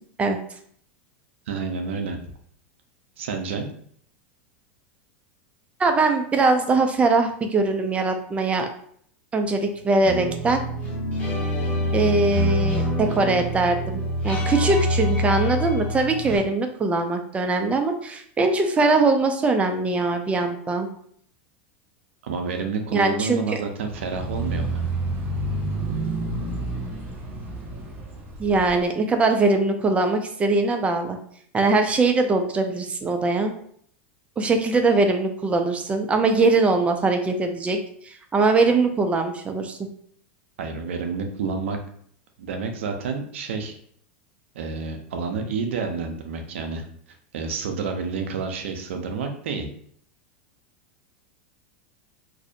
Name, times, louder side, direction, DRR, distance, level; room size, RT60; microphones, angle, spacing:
voice 1, 1.5-2.2 3.2-3.7 22.2-24.8 40.6-41.8 42.4-43.8 44.5-46.8 47.3-49.7, right 4 dB, 80° right, 5 dB, 0.5 m, -29 dB
voice 2, 5.8-8.7 9.3-10.6 11.9-20.9 22.9-23.4 28.4-31.2 31.5-33.5 34.4-37.8 38.0-39.8, right 3 dB, 20° right, 6 dB, 0.4 m, -21 dB
sound 1, 10.0-16.4, equal, 30° left, 1.5 m, -25 dB
sound 2, 23.8-28.8, right 2 dB, 35° right, 0.7 m, -29 dB
2.5 x 2.0 x 2.6 m, 0.63 s
hypercardioid pair, 110°, 7 cm